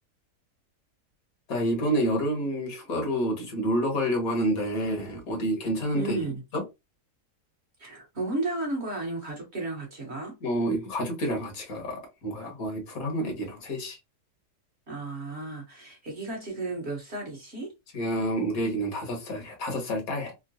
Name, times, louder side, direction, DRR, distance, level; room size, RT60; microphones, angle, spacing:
voice 1, 1.5-6.2 6.5-6.6 10.4-14.0 17.9-20.3, equal, 65° left, 1.5 m, -28 dB
voice 2, 5.9-6.4 7.8-10.3 14.9-17.7, right 2 dB, 50° right, 1.1 m, -33 dB
3.6 x 2.1 x 2.6 m
omnidirectional pair, 1.6 m